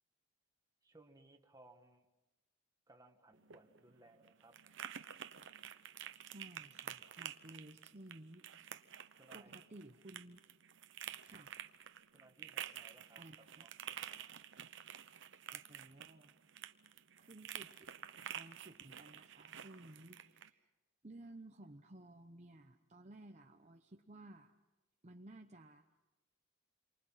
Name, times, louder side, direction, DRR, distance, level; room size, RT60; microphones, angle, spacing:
voice 1, 0.8-2.1 2.9-4.6 9.1-9.5 12.1-13.2 13.6-14.3, right 2 dB, 20° right, 4 dB, 1.7 m, -63 dB
sound 1, 3.3-20.5, right 9 dB, 65° right, 0.9 m, -50 dB
voice 2, 6.3-8.5 9.3-10.4 11.2-11.6 13.2-13.7 15.5-16.3 17.2-17.9 18.3-20.7 21.0-24.5 25.0-25.9, right 1 dB, 35° right, 3 dB, 0.9 m, -56 dB
29.0 x 24.0 x 5.8 m, 1.0 s
head